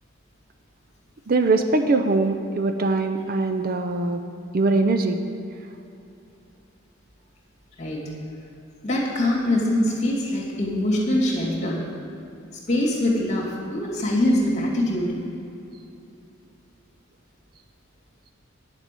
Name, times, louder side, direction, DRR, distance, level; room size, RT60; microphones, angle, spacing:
voice 1, 1.3-4.2 4.5-5.2, right 3 dB, 45° right, 6 dB, 0.5 m, -22 dB
voice 2, 8.8-11.8 12.7-15.1, left 1 dB, 35° left, -4 dB, 2.4 m, -23 dB
10.0 x 7.3 x 6.8 m, 2.8 s
head